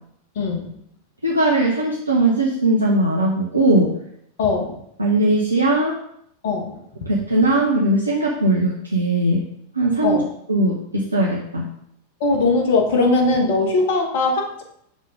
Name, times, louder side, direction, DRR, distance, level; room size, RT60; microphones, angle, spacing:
voice 1, 0.3-0.7 4.4-4.8 6.4-6.8 10.0-10.2 12.2-14.6, left 3 dB, 55° left, 2 dB, 1.3 m, -20 dB
voice 2, 1.2-3.9 5.0-6.0 7.1-9.4 9.7-10.2 10.5-11.6, right 2 dB, 80° right, -3 dB, 0.8 m, -19 dB
5.0 x 3.8 x 5.5 m, 0.73 s
figure-of-eight pair, 90°, 0 cm